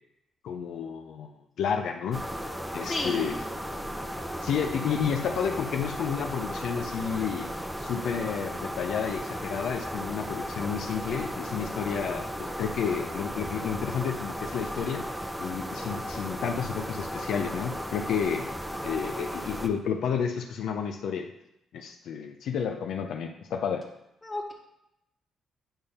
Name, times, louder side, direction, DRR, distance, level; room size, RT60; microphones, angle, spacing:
voice 1, 0.4-2.3 2.7-3.4 4.4-7.5 7.8-15.1 15.4-18.5 18.8-21.3 21.7-23.9, left 7 dB, 75° left, 4 dB, 0.5 m, -31 dB
sound 1, 2.1-19.7, equal, 5° right, 0.6 m, -35 dB
voice 2, 2.8-3.4 11.9-12.0 24.2-24.5, left 2 dB, 20° left, 1 dB, 1.4 m, -33 dB
8.9 x 3.5 x 5.5 m, 0.85 s
cardioid pair, 90°, 0 cm